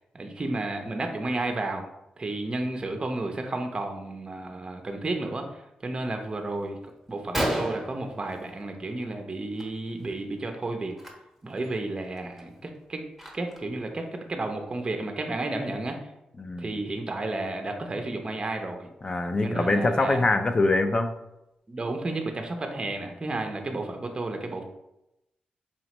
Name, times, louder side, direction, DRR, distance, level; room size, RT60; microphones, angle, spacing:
voice 1, 0.1-1.9 2.2-6.8 7.1-10.9 11.4-13.0 13.3-16.0 16.6-18.9 19.4-20.3 21.7-24.6, right 2 dB, 30° right, 4 dB, 0.5 m, -32 dB
Gunshot gunfire, 6.7-6.8 7.1-7.2 7.3-9.0 9.3-9.6 9.9-10.1 10.9-11.1 11.6-11.7 12.2-13.8, right 1 dB, ahead, 0.9 m, -32 dB
voice 2, 16.4-16.8 19.0-21.1, left 2 dB, 30° left, 7 dB, 0.4 m, -24 dB
4.3 x 3.0 x 2.9 m, 0.87 s
cardioid pair, 95°, 3 cm